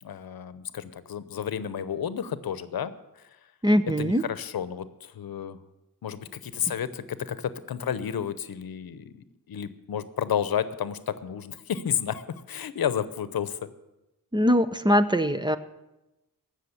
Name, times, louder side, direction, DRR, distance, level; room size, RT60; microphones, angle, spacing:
voice 1, 0.0-2.9 3.2-3.3 4.0-5.6 6.0-12.2 12.5-13.6, left 8 dB, 80° left, 14 dB, 0.8 m, -31 dB
voice 2, 3.6-4.3 14.3-15.6, equal, 15° right, 11 dB, 0.6 m, -22 dB
16.0 x 6.5 x 8.4 m, 0.96 s
wide cardioid pair, 110°, 35 cm